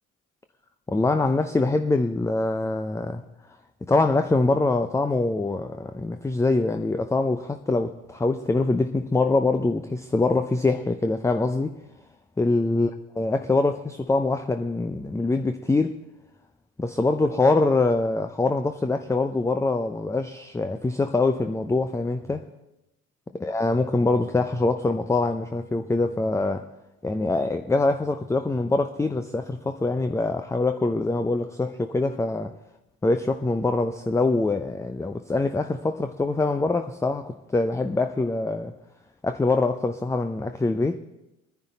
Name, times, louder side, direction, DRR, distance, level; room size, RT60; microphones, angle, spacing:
voice 1, 0.9-3.2 3.9-11.7 12.4-12.9 13.2-15.9 16.8-22.4 23.3-26.7 27.0-32.5 33.0-38.8 39.2-41.0, left 3 dB, 5° left, 0.6 m, -24 dB
22.5 x 10.5 x 4.0 m
figure-of-eight pair, 55°, 40 cm